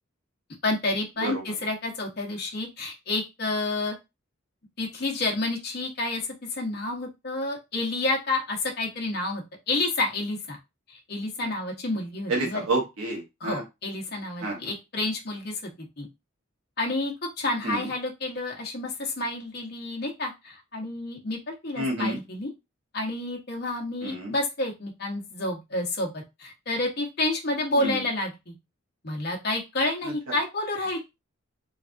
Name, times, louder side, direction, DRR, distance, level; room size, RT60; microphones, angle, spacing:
voice 1, 0.6-3.9 4.8-6.2 6.5-10.6 10.9-12.6 13.4-16.1 16.8-21.4 21.6-22.5 22.9-28.5 29.0-31.0, left 2 dB, 50° left, 0 dB, 0.9 m, -29 dB
voice 2, 12.3-13.6 14.4-14.6 17.6-17.9 21.8-22.2 24.0-24.3 27.8-28.0, right 2 dB, 85° right, -2 dB, 1.1 m, -29 dB
3.2 x 2.3 x 2.5 m, 0.24 s
head